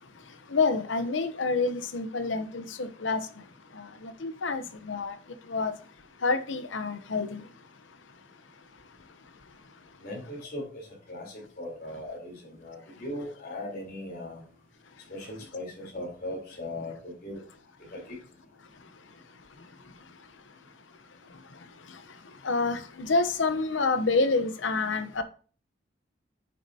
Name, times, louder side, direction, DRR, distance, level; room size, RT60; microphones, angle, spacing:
voice 1, 0.5-3.2 3.7-5.2 5.5-5.7 6.2-7.4 22.4-25.2, left 3 dB, 85° left, 0.9 m, -28 dB
voice 2, 10.0-10.6 11.1-14.4 15.1-17.4 17.9-18.2, left 1 dB, 50° left, 3.6 m, -38 dB
8.8 x 6.4 x 2.8 m
head